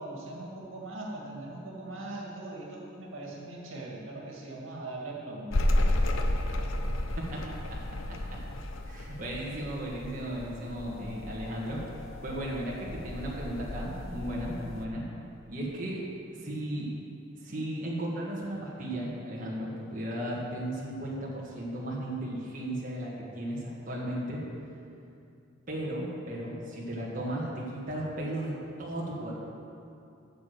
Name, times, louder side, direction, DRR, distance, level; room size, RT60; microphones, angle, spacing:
voice 1, 0.0-5.5, right 2 dB, 85° right, -2 dB, 2.0 m, -40 dB
sound 1, 5.5-14.8, left 1 dB, 90° left, 0.8 m, -32 dB
voice 2, 8.9-11.8 12.2-15.0 15.5-16.0 16.3-16.9 17.4-24.4 25.7-29.4, right 1 dB, 45° right, -5 dB, 1.7 m, -35 dB
8.8 x 6.8 x 7.8 m, 2.6 s
head